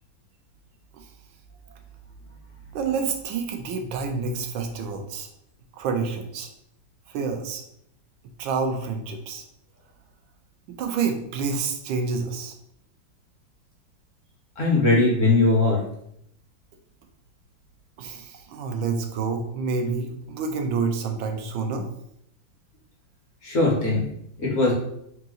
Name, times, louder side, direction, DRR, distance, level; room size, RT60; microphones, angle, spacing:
voice 1, 2.7-5.3 5.7-6.5 7.1-7.6 8.4-9.4 10.7-12.5 18.0-21.9, right 5 dB, 85° right, 4 dB, 1.4 m, -28 dB
voice 2, 14.6-15.8 23.4-24.0 24.4-24.7, left 2 dB, 50° left, -3 dB, 1.2 m, -20 dB
3.8 x 2.9 x 3.7 m, 0.73 s
omnidirectional pair, 2.1 m